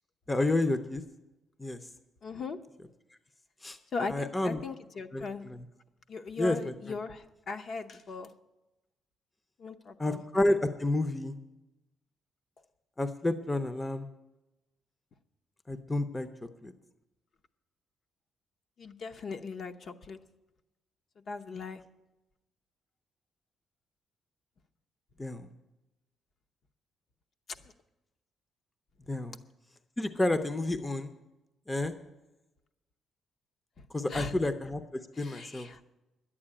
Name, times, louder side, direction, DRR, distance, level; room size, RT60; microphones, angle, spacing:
voice 1, 0.3-1.0 1.6-1.8 3.6-3.8 4.1-4.6 5.1-5.6 6.4-6.7 10.0-11.4 13.0-14.1 15.7-16.3 16.6-16.7 25.2-25.5 29.1-29.4 30.0-31.1 31.7-31.9 33.9-35.7, left 2 dB, 15° left, 9 dB, 0.6 m, -30 dB
voice 2, 2.2-2.6 3.9-5.4 6.1-8.3 9.6-10.2 18.8-20.2 21.3-21.8 27.5-27.7 33.8-34.3 35.1-35.8, left 4 dB, 45° left, 7 dB, 0.8 m, -39 dB
11.0 x 8.6 x 9.9 m, 1.0 s
cardioid pair, 145°, 0 cm